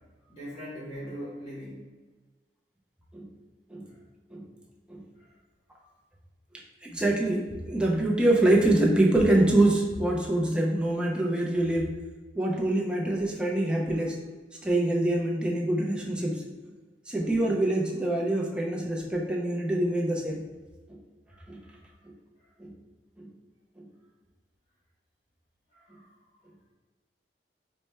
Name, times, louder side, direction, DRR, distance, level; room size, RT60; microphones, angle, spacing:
voice 1, 0.3-1.8 3.9-4.0 5.1-5.4 5.8-5.9 21.3-22.0 22.4-22.5 25.7-26.2, equal, 25° left, -7 dB, 0.9 m, -42 dB
voice 2, 6.8-11.9 12.4-14.2 14.6-16.4 17.1-20.4 20.9-21.0 21.5-21.6 22.0-22.1 22.6-22.7 23.2-23.3 23.8-23.9, right 1 dB, 5° right, -2 dB, 0.5 m, -25 dB
4.3 x 2.1 x 3.2 m, 1.3 s
head